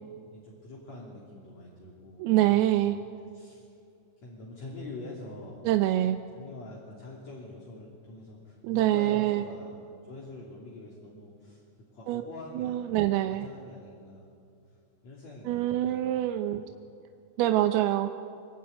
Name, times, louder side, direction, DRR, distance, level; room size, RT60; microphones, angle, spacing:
voice 1, 0.0-3.0 3.3-3.7 4.2-5.7 6.4-11.6 11.9-14.3 14.7-14.8 15.0-16.3 16.7-16.8, left 2 dB, 40° left, -2 dB, 3.9 m, -45 dB
voice 2, 2.2-3.0 5.7-6.2 8.6-9.4 12.1-12.2 12.6-13.5 15.5-16.6 17.4-18.1, right 14 dB, 75° right, 7 dB, 2.5 m, -25 dB
25.0 x 23.0 x 9.4 m, 2.5 s
omnidirectional pair, 5.1 m